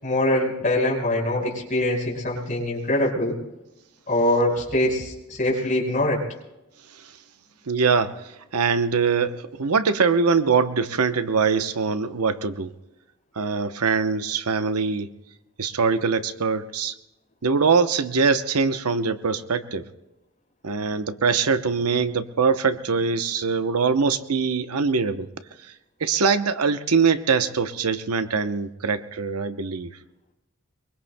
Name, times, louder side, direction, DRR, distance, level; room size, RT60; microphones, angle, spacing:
voice 1, 0.0-3.4 4.1-6.2, left 1 dB, 35° left, -2 dB, 4.8 m, -23 dB
voice 2, 7.7-12.7 13.3-15.1 15.6-17.0 17.4-19.9 20.6-25.3 25.6-25.7 26.0-29.9, right 5 dB, 90° right, 10 dB, 0.8 m, -23 dB
23.5 x 23.5 x 2.2 m, 0.92 s
head